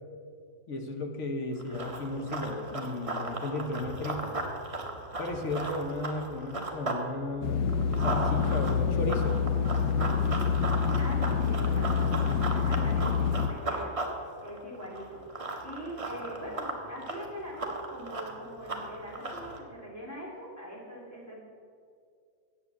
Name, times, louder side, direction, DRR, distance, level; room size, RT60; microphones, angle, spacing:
voice 1, 0.7-4.3 5.2-7.7 8.0-9.4, left 2 dB, 45° left, 4 dB, 1.1 m, -34 dB
Run, 1.6-7.0 7.4-19.6, right 2 dB, 25° right, 0.8 m, -36 dB
sound 1, 7.4-13.5, left 6 dB, 85° left, 1.5 m, -27 dB
voice 2, 10.0-10.5 10.9-21.3, equal, 10° left, -5 dB, 2.5 m, -42 dB
8.6 x 7.5 x 8.2 m, 2.3 s
omnidirectional pair, 2.1 m